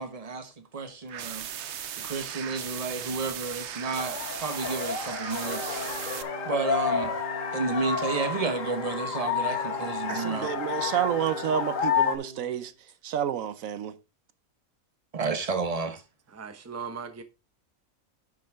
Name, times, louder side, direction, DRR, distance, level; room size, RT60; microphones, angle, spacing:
voice 1, 0.0-1.5 2.0-6.2 6.4-7.2 7.5-10.5 15.1-16.0, right 4 dB, 30° right, 1.1 m, -31 dB
sound 1, 1.1-6.2, right 9 dB, 60° right, 0.9 m, -37 dB
sound 2, 4.0-12.2, left 6 dB, 70° left, 1.5 m, -30 dB
Wind instrument woodwind instrument, 5.4-12.7, right 1 dB, 40° left, 1.6 m, -42 dB
voice 2, 10.1-12.7 13.0-13.9, right 9 dB, 80° right, 1.1 m, -29 dB
voice 3, 16.3-17.2, right 5 dB, 15° right, 0.8 m, -38 dB
10.0 x 6.3 x 3.5 m
omnidirectional pair, 1.4 m